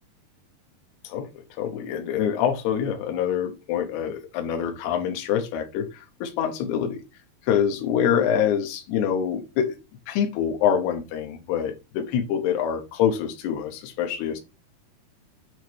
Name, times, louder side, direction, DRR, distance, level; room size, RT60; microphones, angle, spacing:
voice 1, 1.6-7.0 7.4-9.8 10.1-14.4, left 8 dB, 80° left, 3.2 m, -25 dB
8.8 x 3.2 x 4.6 m
omnidirectional pair, 4.6 m